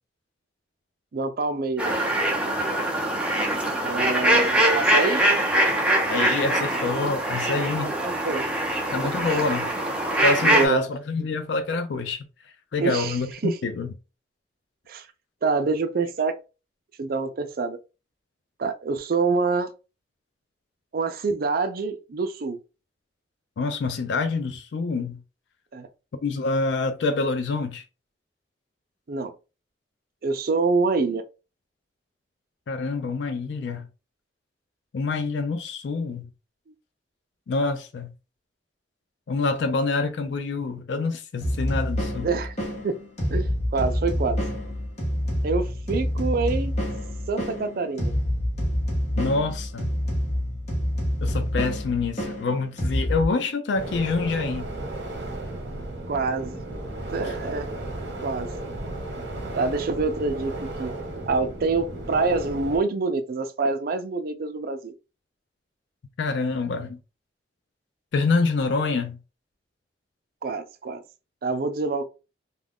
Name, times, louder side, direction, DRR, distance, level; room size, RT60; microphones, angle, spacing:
voice 1, 1.1-2.0 3.8-5.2 7.5-8.4 10.4-10.8 12.8-13.2 13.4-13.6 14.9-15.1 15.4-16.4 17.0-17.8 18.6-19.7 20.9-22.6 25.7-25.9 29.1-29.3 30.2-31.2 42.2-42.5 42.8-43.0 43.3-44.4 45.4-46.7 47.3-48.1 56.1-56.6 57.1-57.7 58.2-58.5 59.5-60.9 61.3-64.9 70.4-71.0 71.4-72.0, right 4 dB, 55° right, 0.4 m, -26 dB
sound 1, 1.8-10.7, right 1 dB, 5° right, 0.6 m, -23 dB
voice 2, 6.1-7.9 8.9-9.7 10.2-12.2 12.7-13.9 23.6-25.2 26.2-27.8 32.7-33.9 34.9-36.3 37.5-38.1 39.3-42.3 49.2-49.9 51.2-54.7 57.2-57.3 66.2-67.0 68.1-69.2, left 3 dB, 75° left, 0.4 m, -26 dB
sound 2, 41.4-53.3, equal, 40° left, 0.9 m, -27 dB
sound 3, 53.7-62.8, right 2 dB, 70° right, 0.8 m, -34 dB
2.4 x 2.2 x 3.5 m
head